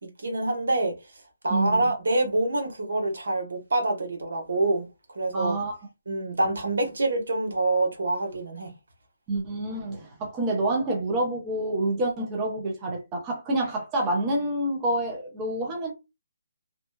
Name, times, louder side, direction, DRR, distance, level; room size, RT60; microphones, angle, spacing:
voice 1, 0.0-0.9 1.4-4.9 5.1-5.6 6.1-8.7, right 2 dB, 75° right, 1.0 m, -26 dB
voice 2, 1.5-1.9 5.3-5.8 9.3-15.9, right 1 dB, 15° right, 0.7 m, -27 dB
2.7 x 2.1 x 2.2 m
hypercardioid pair, 165°, 0 cm